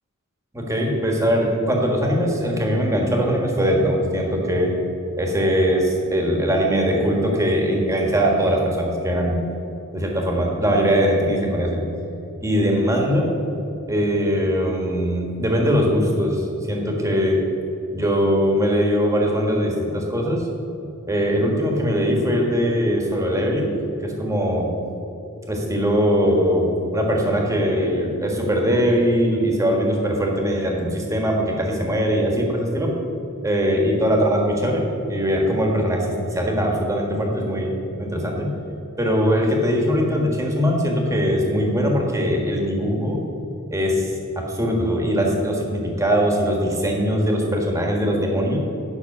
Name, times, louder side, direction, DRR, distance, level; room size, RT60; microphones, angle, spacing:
voice 1, 0.5-4.7 5.1-9.4 9.9-11.8 12.4-13.3 13.9-17.4 17.9-20.5 21.1-24.7 25.5-32.9 33.4-37.7 38.0-38.6 39.0-43.2 43.7-48.6, equal, 15° right, 0 dB, 1.5 m, -21 dB
9.7 x 5.8 x 6.0 m, 2.9 s
head